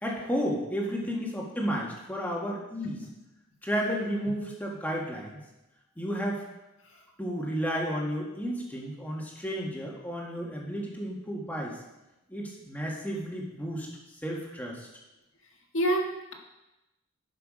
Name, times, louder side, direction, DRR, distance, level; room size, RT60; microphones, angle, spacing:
voice 1, 0.0-3.0 3.6-5.4 6.0-6.4 7.2-11.8 12.3-13.9 14.2-14.9, equal, 10° left, -2 dB, 1.7 m, -32 dB
voice 2, 2.8-3.2 6.8-7.0 15.7-16.3, right 1 dB, 70° left, 1 dB, 1.6 m, -29 dB
11.5 x 5.9 x 5.0 m, 0.96 s
head